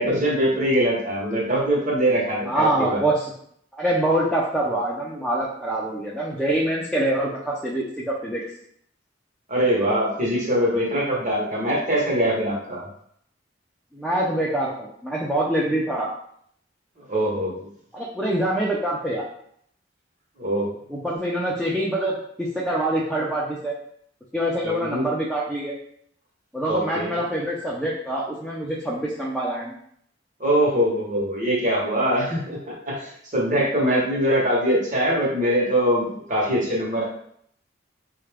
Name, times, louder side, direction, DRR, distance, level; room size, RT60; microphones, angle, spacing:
voice 1, 0.0-3.0 9.5-12.9 17.1-17.7 20.4-20.7 24.6-25.0 26.7-27.2 30.4-37.0, equal, 45° right, -3 dB, 1.0 m, -23 dB
voice 2, 2.5-3.3 3.7-8.4 13.9-16.1 17.9-19.2 20.9-23.7 24.3-25.7 26.5-29.7, right 1 dB, ahead, -6 dB, 0.5 m, -25 dB
3.7 x 2.4 x 3.3 m, 0.68 s
head